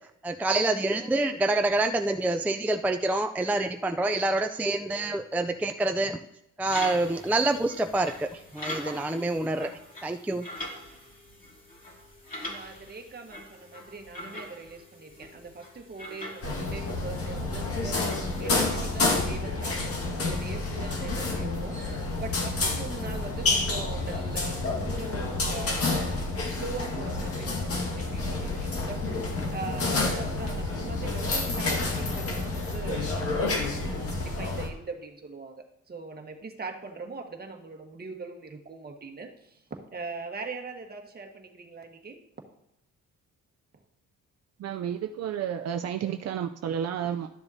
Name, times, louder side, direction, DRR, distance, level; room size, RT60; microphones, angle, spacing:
voice 1, 0.2-6.2 6.6-9.7 10.0-10.4, right 2 dB, 5° right, 5 dB, 0.4 m, -27 dB
sound 1, 6.6-19.2, left 1 dB, 30° left, 2.8 m, -43 dB
voice 2, 12.4-26.1 26.5-42.2, right 4 dB, 30° right, 3 dB, 1.4 m, -41 dB
sound 2, 16.4-34.7, left 3 dB, 50° left, 1.8 m, -29 dB
voice 3, 44.6-47.3, right 9 dB, 60° right, 7 dB, 0.5 m, -31 dB
12.5 x 6.9 x 2.8 m, 0.83 s
cardioid pair, 90°, 30 cm